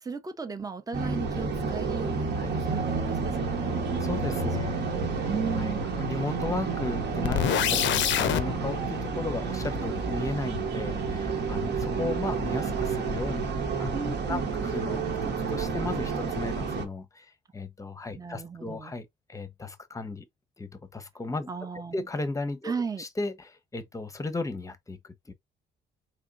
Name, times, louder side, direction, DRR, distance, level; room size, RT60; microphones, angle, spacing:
voice 1, 0.0-3.8 4.2-4.5 4.8-6.0 13.9-14.8 18.1-18.9 21.5-21.9 22.6-23.0, right 5 dB, 20° right, 0.7 m, -36 dB
sound 1, 0.9-16.8, right 4 dB, 60° right, 1.1 m, -30 dB
voice 2, 4.0-4.9 5.6-13.5 13.8-13.9 14.3-17.3 17.5-20.3 20.6-21.5 21.9-22.7 23.0-25.3, left 2 dB, 15° left, 0.8 m, -35 dB
sound 2, 7.2-8.4, left 12 dB, 70° left, 0.5 m, -25 dB
3.7 x 3.0 x 2.5 m
cardioid pair, 90°, 20 cm